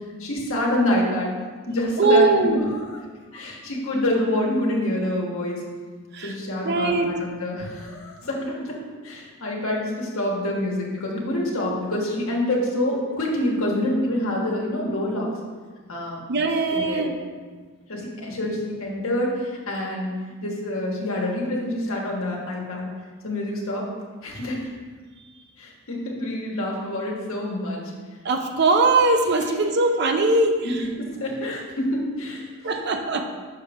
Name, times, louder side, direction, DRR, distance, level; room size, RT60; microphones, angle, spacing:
voice 1, 0.2-1.3 1.7-3.0 3.3-5.6 6.2-8.8 9.0-15.3 15.9-16.2 16.7-17.0 17.9-22.9 23.2-23.8 24.2-24.6 25.6-27.8 30.6-32.7, left 1 dB, 70° left, -2 dB, 1.3 m, -27 dB
voice 2, 2.0-2.6 6.1-6.3 6.6-7.1 16.3-17.1 28.2-30.8 32.6-33.3, right 3 dB, 50° right, 5 dB, 0.5 m, -20 dB
6.5 x 5.0 x 3.5 m, 1.5 s
head